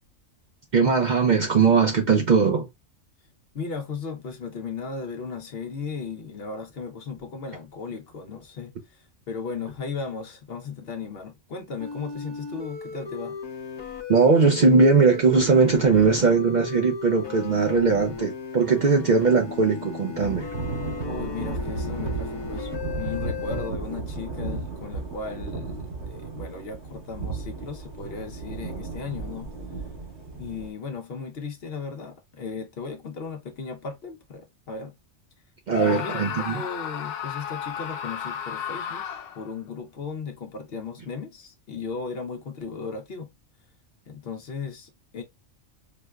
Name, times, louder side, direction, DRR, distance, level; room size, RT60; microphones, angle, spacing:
voice 1, 0.7-2.7 14.1-20.5 35.7-36.6, right 4 dB, 55° right, 0.5 m, -20 dB
voice 2, 3.5-13.4 21.0-22.7 22.9-29.5 30.4-34.9 35.8-36.2 36.5-39.0 39.4-43.3 44.1-45.2, left 5 dB, 60° left, 0.9 m, -36 dB
sound 1, 11.8-23.7, left 5 dB, 25° left, 0.8 m, -37 dB
Thunder / Rain, 20.2-30.7, right 3 dB, 70° right, 1.9 m, -34 dB
Screaming, 35.7-39.5, left 8 dB, 85° left, 0.9 m, -33 dB
4.9 x 2.0 x 2.3 m
omnidirectional pair, 1.3 m